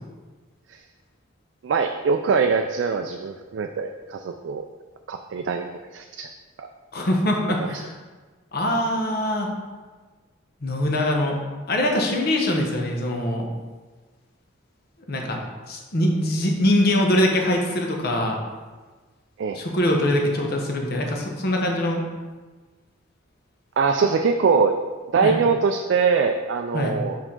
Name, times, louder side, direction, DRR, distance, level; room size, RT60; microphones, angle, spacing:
voice 1, 1.6-4.6 5.1-6.3 6.6-6.7 7.6-7.7 19.4-19.6 23.8-24.8 25.1-27.2, right 5 dB, 65° right, 5 dB, 0.3 m, -23 dB
voice 2, 6.9-7.9 8.5-9.5 10.6-11.4 11.7-13.5 15.1-15.4 15.7-18.4 19.5-22.0 25.2-25.3 26.7-27.0, left 1 dB, 50° left, 1 dB, 0.9 m, -23 dB
5.5 x 4.9 x 3.7 m, 1.3 s
head